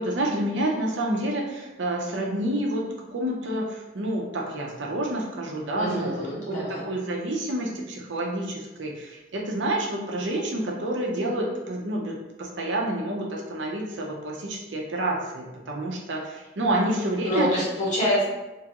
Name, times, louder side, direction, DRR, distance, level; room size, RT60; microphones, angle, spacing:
voice 1, 0.0-6.2 6.5-17.5 18.0-18.1, right 1 dB, 90° right, -1 dB, 0.6 m, -28 dB
voice 2, 5.8-6.8 17.2-18.2, left 1 dB, 45° left, -7 dB, 1.2 m, -26 dB
3.0 x 2.4 x 2.9 m, 1.1 s
head